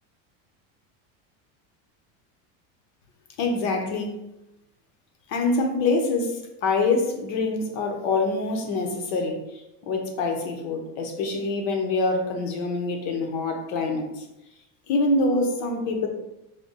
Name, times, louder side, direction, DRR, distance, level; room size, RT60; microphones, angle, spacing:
voice 1, 3.4-4.1 5.3-14.3 14.9-16.1, left 3 dB, 65° left, 3 dB, 1.0 m, -25 dB
5.0 x 2.2 x 4.0 m, 0.92 s
cardioid pair, 165°, 39 cm